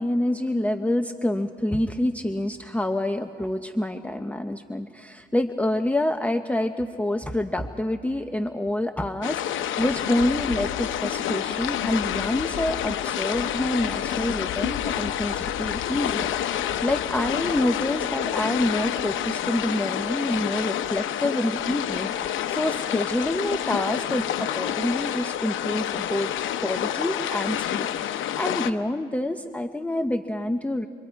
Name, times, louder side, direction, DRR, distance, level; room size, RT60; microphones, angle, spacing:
voice 1, 0.0-26.3 26.6-30.9, left 1 dB, 5° left, 6 dB, 0.7 m, -27 dB
sound 1, 9.2-28.7, left 10 dB, 80° left, 0.9 m, -28 dB
26.0 x 25.0 x 4.6 m, 2.2 s
cardioid pair, 90°, 20 cm